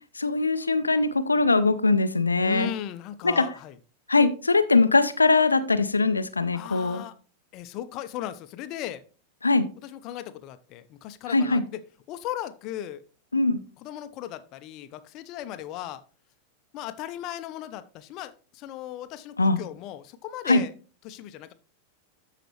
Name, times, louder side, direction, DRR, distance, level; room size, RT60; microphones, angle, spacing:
voice 1, 0.2-2.7 3.2-3.4 4.1-7.0 9.4-9.7 11.3-11.6 13.3-13.6 19.4-19.6 20.5-20.6, left 3 dB, 80° left, 12 dB, 0.6 m, -21 dB
voice 2, 2.4-3.8 6.5-7.1 7.5-9.0 9.8-11.8 12.1-13.0 13.8-16.0 16.7-20.7 21.0-21.5, left 12 dB, 40° left, 12 dB, 0.8 m, -37 dB
13.0 x 5.0 x 3.2 m, 0.37 s
figure-of-eight pair, 90°, 0 cm